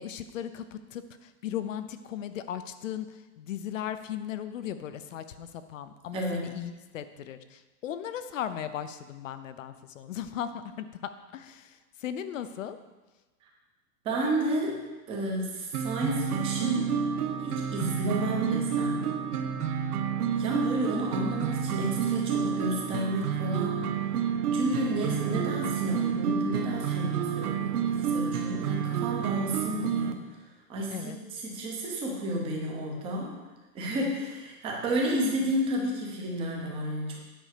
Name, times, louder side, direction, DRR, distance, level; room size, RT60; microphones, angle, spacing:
voice 1, 0.0-12.8 30.9-31.2, left 9 dB, 50° left, 11 dB, 0.7 m, -37 dB
voice 2, 6.1-6.5 14.0-14.8 15.1-16.9 17.4-19.1 20.4-24.1 24.5-30.2 30.7-33.3 33.7-37.2, right 1 dB, 10° right, -1 dB, 0.9 m, -31 dB
Medieval Lute Chords, 15.7-30.1, right 8 dB, 70° right, 1.0 m, -29 dB
9.3 x 5.4 x 6.6 m, 1.2 s
supercardioid pair, 175°, 48 cm